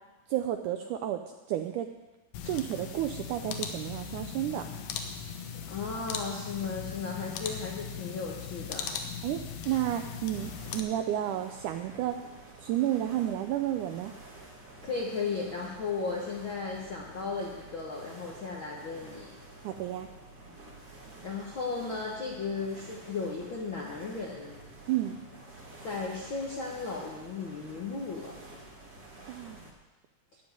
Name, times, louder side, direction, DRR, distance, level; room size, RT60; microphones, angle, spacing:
voice 1, 0.3-1.2 1.5-1.9 2.5-4.7 9.2-12.2 12.6-14.1 19.6-20.1 24.9-25.2 29.3-29.6, right 12 dB, 85° right, 6 dB, 1.8 m, -31 dB
sound 1, 2.3-10.8, left 7 dB, 80° left, 2.8 m, -39 dB
voice 2, 5.6-8.9 14.8-19.3 21.2-24.5 25.8-28.3, left 4 dB, 65° left, -2 dB, 1.2 m, -35 dB
sound 2, 10.3-29.7, right 2 dB, 45° right, 1.0 m, -50 dB
14.0 x 5.3 x 9.3 m, 1.2 s
omnidirectional pair, 4.1 m